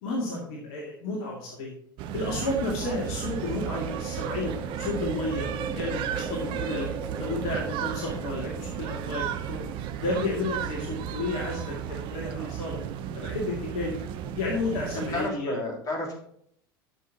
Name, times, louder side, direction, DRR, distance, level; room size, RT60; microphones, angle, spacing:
voice 1, 0.0-1.7 2.1-6.9 7.2-9.6 10.0-12.8 13.1-14.0 14.3-15.6, left 2 dB, 55° left, -2 dB, 2.3 m, -32 dB
sound 1, 2.0-15.3, right 10 dB, 45° right, 0.8 m, -34 dB
sound 2, 2.5-10.1, right 4 dB, 15° right, 1.5 m, -39 dB
voice 2, 15.1-16.1, left 2 dB, 30° left, -2 dB, 3.3 m, -32 dB
12.5 x 7.0 x 2.9 m, 0.68 s
figure-of-eight pair, 75°, 12 cm